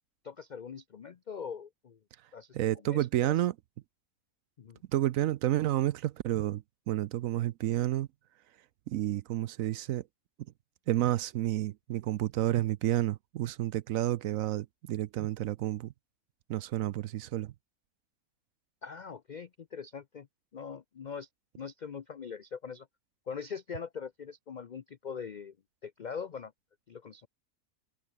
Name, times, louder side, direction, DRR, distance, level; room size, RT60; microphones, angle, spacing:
voice 1, 0.2-2.0 2.3-3.3 4.6-4.8 18.8-20.3 20.5-21.3 21.6-22.9 23.3-25.5 25.8-26.5 26.9-27.3, left 6 dB, 80° left, 0.4 m, -42 dB
voice 2, 2.5-3.5 4.9-8.1 8.9-10.0 10.9-15.9 16.5-17.5, right 13 dB, 70° right, 0.9 m, -30 dB
omnidirectional pair, 1.6 m